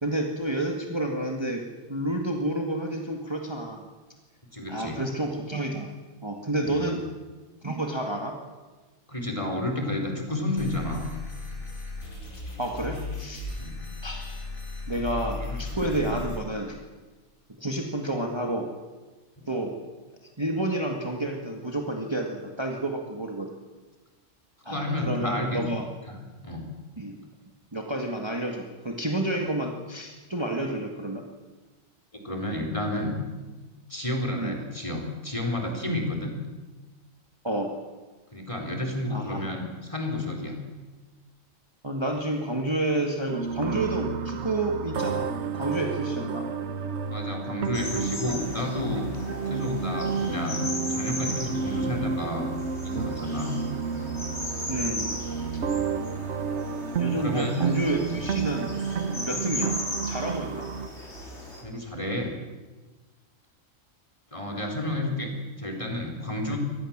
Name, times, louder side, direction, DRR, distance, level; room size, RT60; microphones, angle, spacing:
voice 1, 0.0-1.6 1.9-3.8 4.7-5.9 6.2-7.0 7.6-8.4 12.6-13.6 14.0-14.4 14.9-16.8 17.6-18.7 19.5-19.7 20.4-23.5 24.6-25.8 27.0-27.2 27.7-31.2 34.3-34.6 37.4-37.7 39.1-39.5 41.8-46.5 54.7-55.1 55.5-55.6 57.0-58.7 59.1-59.8 60.0-60.7 64.5-64.8 66.5-66.6, right 1 dB, 20° right, 2 dB, 2.0 m, -30 dB
voice 2, 4.5-5.0 6.6-6.9 9.1-11.1 13.6-13.8 15.4-15.6 15.9-16.1 24.7-25.7 26.1-26.2 26.4-26.7 32.1-33.1 33.9-36.3 38.3-40.6 47.1-49.1 49.5-50.6 50.9-52.5 52.8-53.6 57.2-57.6 61.6-62.3 64.3-66.6, left 1 dB, 25° left, 2 dB, 4.3 m, -31 dB
sound 1, 10.6-16.4, left 2 dB, 85° left, 5.1 m, -36 dB
sound 2, 43.3-60.9, right 5 dB, 60° right, 1.3 m, -31 dB
sound 3, 47.7-61.6, left 1 dB, 55° left, 5.2 m, -37 dB
24.5 x 19.0 x 7.4 m, 1.3 s
omnidirectional pair, 1.4 m